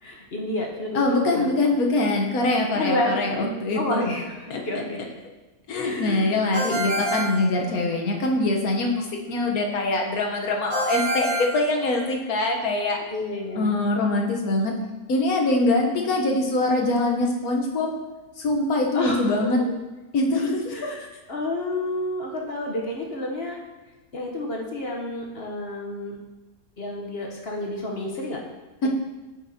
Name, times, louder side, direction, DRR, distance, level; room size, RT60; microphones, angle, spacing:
voice 1, 0.0-1.5 2.7-5.0 5.8-6.4 13.1-13.8 18.9-19.2 20.7-23.6 24.1-26.2 26.8-28.4 28.8-28.9, left 1 dB, 50° left, -1 dB, 0.9 m, -30 dB
voice 2, 0.9-4.0 4.5-4.8 5.7-13.0 13.5-14.7 15.1-17.9 18.4-19.6 20.1-20.9 28.8-28.9, left 2 dB, 70° left, 1 dB, 1.4 m, -23 dB
Ringtone, 6.5-8.2 10.7-12.4, right 1 dB, 65° right, 1.8 m, -28 dB
8.6 x 5.9 x 2.7 m, 1.1 s
omnidirectional pair, 1.6 m